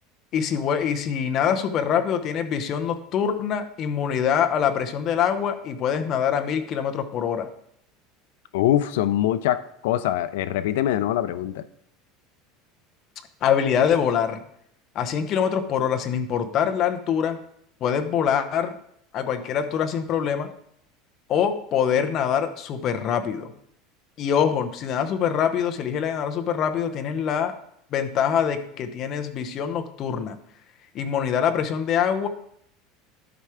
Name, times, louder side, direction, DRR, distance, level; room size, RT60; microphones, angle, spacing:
voice 1, 0.3-7.5 13.4-14.4 14.9-17.4 17.8-18.7 19.1-20.5 21.3-23.5 24.2-27.5 27.9-30.4 30.9-32.3, left 8 dB, 35° left, 8 dB, 0.7 m, -24 dB
voice 2, 8.5-11.6, left 12 dB, 85° left, 14 dB, 0.4 m, -23 dB
12.0 x 4.4 x 4.9 m, 0.69 s
cardioid pair, 170°, 0 cm